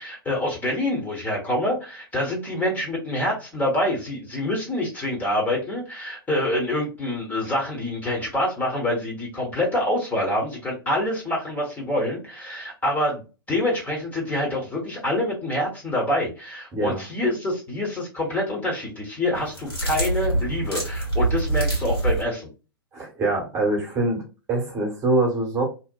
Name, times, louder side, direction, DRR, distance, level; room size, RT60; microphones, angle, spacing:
voice 1, 0.0-13.2 13.5-22.5, left 1 dB, 15° left, -2 dB, 0.9 m, -26 dB
voice 2, 16.7-17.0 22.9-24.2 24.5-25.6, right 2 dB, 20° right, -1 dB, 1.0 m, -24 dB
sound 1, 19.3-22.2, right 2 dB, 80° left, 1.4 m, -25 dB
2.8 x 2.1 x 2.2 m, 0.31 s
figure-of-eight pair, 105°, 12 cm